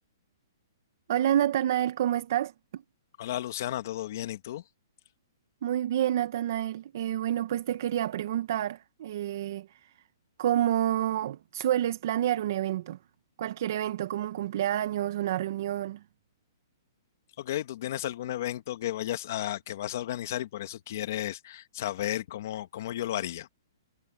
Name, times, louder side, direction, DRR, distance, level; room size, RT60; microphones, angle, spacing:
voice 1, 1.1-2.8 5.6-9.9 10.4-13.0 13.4-16.0, right 11 dB, 45° right, 0.9 m, -28 dB
voice 2, 3.2-4.6 17.4-23.5, left 13 dB, 45° left, 1.8 m, -33 dB
hypercardioid pair, 170°, 2 cm